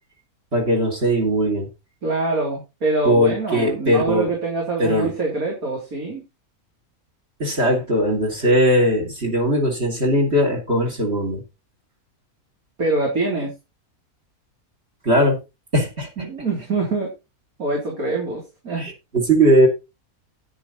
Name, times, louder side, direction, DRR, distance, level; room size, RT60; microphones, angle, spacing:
voice 1, 0.5-1.7 3.0-4.3 4.8-5.1 7.4-11.4 15.0-15.4 15.7-16.3 18.7-19.7, equal, 45° right, 3 dB, 3.3 m, -19 dB
voice 2, 2.0-6.2 12.8-13.5 16.2-17.1 17.6-18.9, right 3 dB, 70° right, -1 dB, 3.8 m, -24 dB
9.9 x 9.3 x 4.0 m, 0.26 s
omnidirectional pair, 1.6 m